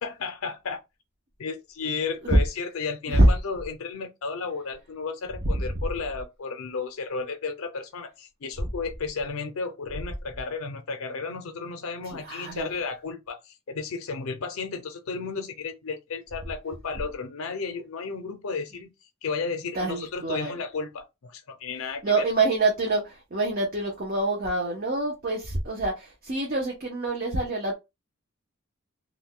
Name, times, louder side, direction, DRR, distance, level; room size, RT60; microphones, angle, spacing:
voice 1, 0.0-0.8 1.4-18.9 19.2-22.3, left 4 dB, 80° left, 0.5 m, -33 dB
voice 2, 12.1-12.7 19.7-20.6 22.0-27.7, right 2 dB, 45° right, 0.7 m, -25 dB
2.4 x 2.2 x 3.6 m
head